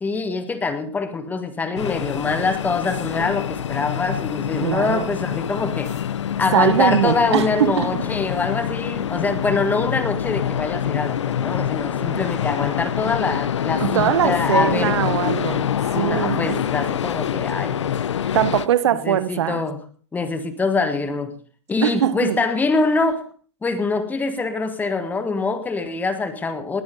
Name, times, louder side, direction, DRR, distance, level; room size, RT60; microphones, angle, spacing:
voice 1, 0.0-5.9 6.4-15.0 15.9-17.9 19.0-19.8 20.1-21.3 21.7-23.3 23.6-26.8, left 4 dB, 10° left, 1.5 m, -24 dB
sound 1, 1.8-18.7, left 9 dB, 90° left, 0.7 m, -25 dB
voice 2, 4.6-5.1 6.5-7.9 12.1-12.2 13.8-15.7 16.0-16.6 18.3-19.6 21.8-22.4, right 10 dB, 75° right, 1.0 m, -21 dB
19.5 x 8.9 x 5.3 m
hypercardioid pair, 135°, 15 cm